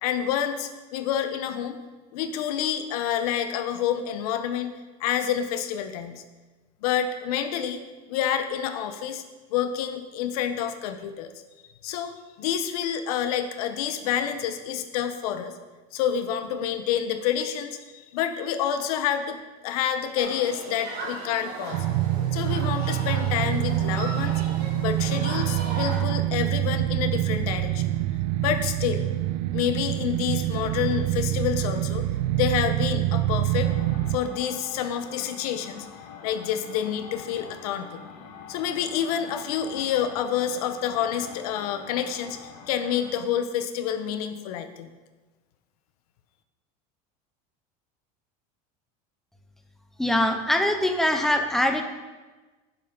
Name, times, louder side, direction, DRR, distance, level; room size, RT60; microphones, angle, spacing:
voice 1, 0.0-1.8 2.1-4.7 5.0-6.2 6.8-7.8 8.1-9.2 9.5-11.3 11.8-15.5 15.9-19.4 19.6-21.8 22.3-24.4 24.8-28.0 28.4-29.1 29.5-32.1 32.3-33.7 34.1-35.9 36.2-38.0 38.5-44.9, left 9 dB, 70° left, 8 dB, 1.1 m, -28 dB
Human group actions, 20.2-26.0, right 2 dB, 45° right, 2.7 m, -37 dB
sound 1, 21.7-34.2, right 14 dB, 75° right, 0.5 m, -26 dB
sound 2, 33.6-43.2, left 7 dB, 50° left, 1.3 m, -45 dB
voice 2, 50.0-51.8, left 1 dB, ahead, 5 dB, 0.6 m, -23 dB
16.0 x 7.3 x 3.9 m, 1.2 s
cardioid pair, 175°, 20 cm